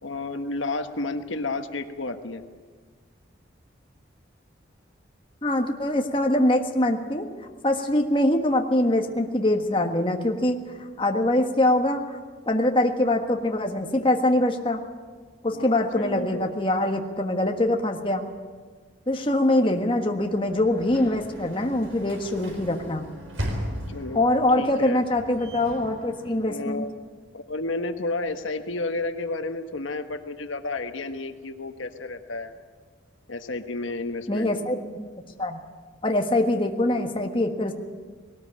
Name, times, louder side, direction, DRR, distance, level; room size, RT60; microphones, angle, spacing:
voice 1, 0.0-2.4 15.5-16.5 23.9-24.2 24.6-25.0 26.4-27.0 27.3-32.5 33.3-34.5, left 2 dB, 80° left, 7 dB, 1.3 m, -31 dB
voice 2, 5.4-7.3 7.6-10.6 11.0-12.2 12.5-14.8 15.4-18.3 19.1-23.0 24.1-26.8 34.3-35.1 35.4-35.6 36.0-37.7, left 1 dB, 25° left, 3 dB, 1.4 m, -23 dB
Sliding door / Slam, 20.0-27.0, equal, 80° right, 4.3 m, -38 dB
20.0 x 18.5 x 8.8 m, 1.5 s
head